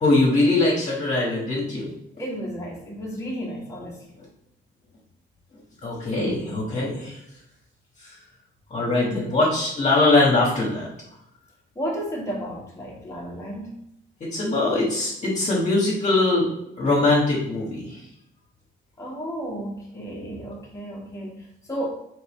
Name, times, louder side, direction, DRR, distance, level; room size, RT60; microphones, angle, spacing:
voice 1, 0.0-1.9 5.8-7.1 8.7-10.9 14.2-16.5 16.8-17.9, left 2 dB, 35° left, -6 dB, 1.3 m, -21 dB
voice 2, 2.2-4.0 11.7-13.8 19.0-21.9, equal, 15° left, -3 dB, 1.1 m, -33 dB
3.8 x 3.3 x 3.6 m, 0.79 s
cardioid pair, 90°, 20 cm